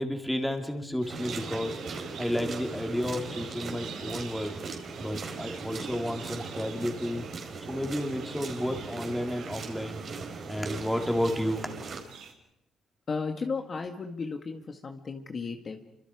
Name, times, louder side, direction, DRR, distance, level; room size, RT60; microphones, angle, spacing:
voice 1, 0.0-4.6 5.0-7.3 7.7-10.0 10.5-11.7, equal, 5° left, 3 dB, 3.6 m, -31 dB
sound 1, 1.0-12.3, right 7 dB, 80° right, 4.0 m, -48 dB
sound 2, 1.1-12.0, right 4 dB, 50° right, 4.7 m, -39 dB
voice 2, 13.1-15.8, left 4 dB, 40° left, 5 dB, 1.8 m, -34 dB
28.0 x 25.0 x 5.0 m, 0.85 s
cardioid pair, 90°, 0 cm